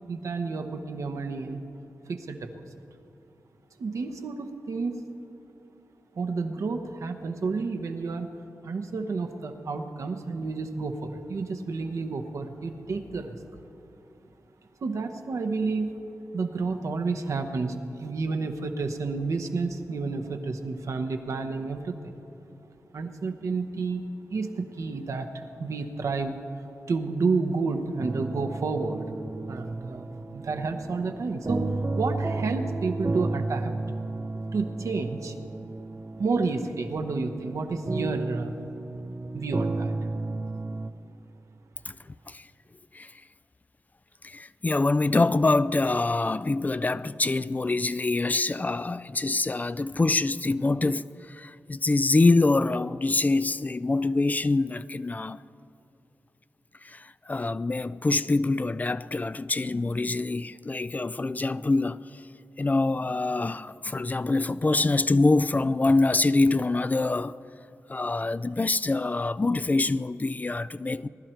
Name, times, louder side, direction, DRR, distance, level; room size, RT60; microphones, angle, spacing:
voice 1, 0.1-1.6 2.1-2.7 3.8-4.9 6.1-8.3 8.6-13.4 14.8-15.9 16.3-22.1 22.9-24.0 24.3-26.4 26.9-29.1 29.5-31.6 32.0-33.7 34.5-35.3 36.2-38.5 39.3-39.9, right 4 dB, 75° right, 1.0 m, -30 dB
sound 1, 28.0-40.9, right 2 dB, 35° right, 0.6 m, -33 dB
voice 2, 44.2-55.4 56.8-62.2 62.6-67.4 67.9-71.1, left 3 dB, 30° left, 0.3 m, -25 dB
20.0 x 11.5 x 4.5 m
cardioid pair, 55°, 5 cm